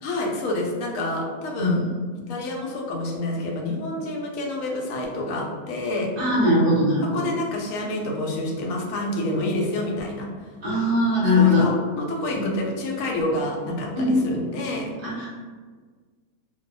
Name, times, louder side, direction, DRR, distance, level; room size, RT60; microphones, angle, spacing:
voice 1, 0.0-1.8 2.3-6.1 7.1-10.3 11.3-14.9, left 1 dB, 70° left, 0 dB, 0.8 m, -28 dB
voice 2, 1.6-2.0 6.2-7.3 10.6-11.7 12.3-12.5 13.9-14.1 15.0-15.3, left 2 dB, 45° right, -6 dB, 0.8 m, -21 dB
2.6 x 2.3 x 2.5 m, 1.5 s
omnidirectional pair, 1.7 m